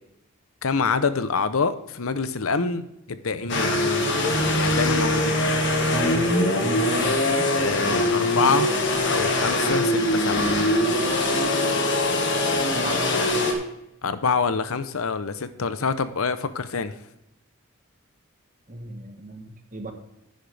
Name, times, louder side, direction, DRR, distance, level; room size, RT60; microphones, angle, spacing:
voice 1, 0.6-3.8 4.5-5.4 7.5-8.7 9.1-10.6 14.0-16.9, left 5 dB, 85° left, 12 dB, 0.7 m, -26 dB
sound 1, 3.5-13.5, left 1 dB, 55° left, 1.7 m, -22 dB
voice 2, 5.9-7.5 7.8-8.6 12.5-13.0 18.7-19.9, right 2 dB, 40° right, 5 dB, 1.3 m, -34 dB
10.5 x 10.0 x 3.4 m, 0.85 s
head